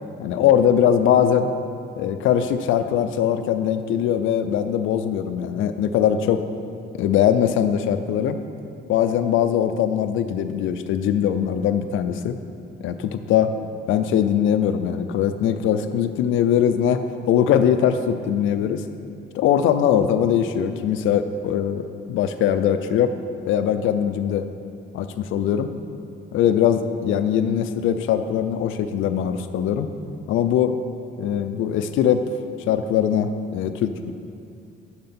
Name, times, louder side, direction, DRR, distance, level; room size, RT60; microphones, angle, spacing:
voice 1, 0.2-1.5 2.0-6.4 7.0-8.4 8.9-12.4 12.8-13.5 13.9-18.8 19.3-23.1 23.5-24.5 24.9-25.7 26.3-29.9 30.3-30.7 31.2-32.2 32.7-34.1, left 9 dB, 85° left, 9 dB, 0.5 m, -21 dB
9.5 x 6.7 x 4.3 m, 2.5 s
cardioid pair, 90°, 20 cm